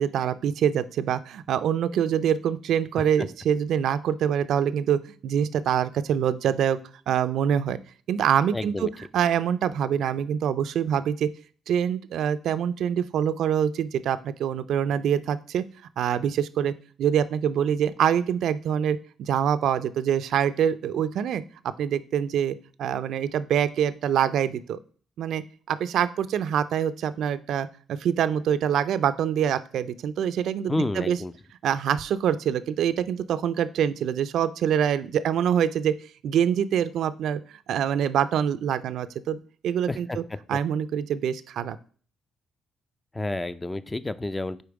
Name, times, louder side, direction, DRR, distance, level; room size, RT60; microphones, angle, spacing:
voice 1, 0.0-6.8 7.1-7.8 8.1-8.9 9.1-11.3 11.7-15.6 16.0-16.7 17.0-21.4 21.8-24.8 25.2-25.4 25.7-31.2 31.6-35.9 36.2-37.4 37.7-40.2 40.5-41.8, right 9 dB, 75° right, 14 dB, 0.3 m, -25 dB
voice 2, 8.5-8.9 30.7-31.3 39.9-40.2 43.1-44.6, left 2 dB, 15° left, 14 dB, 0.4 m, -30 dB
5.1 x 4.3 x 4.7 m, 0.43 s
cardioid pair, 90°, 0 cm